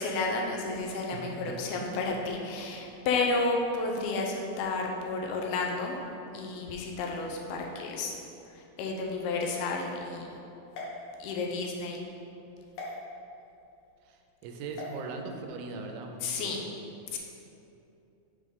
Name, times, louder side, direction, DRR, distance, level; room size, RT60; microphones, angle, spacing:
voice 1, 0.0-6.0 6.3-8.2 8.5-10.4 11.2-12.1 16.2-16.6 17.1-17.2, left 3 dB, 80° left, 0 dB, 2.5 m, -31 dB
voice 2, 1.1-1.8 14.0-16.7, right 3 dB, 85° right, 4 dB, 2.5 m, -40 dB
sound 1, 10.7-11.7 12.7-12.9 14.7-15.0, left 2 dB, 65° left, 2.1 m, -41 dB
6.7 x 3.7 x 5.2 m, 2.8 s
omnidirectional pair, 4.5 m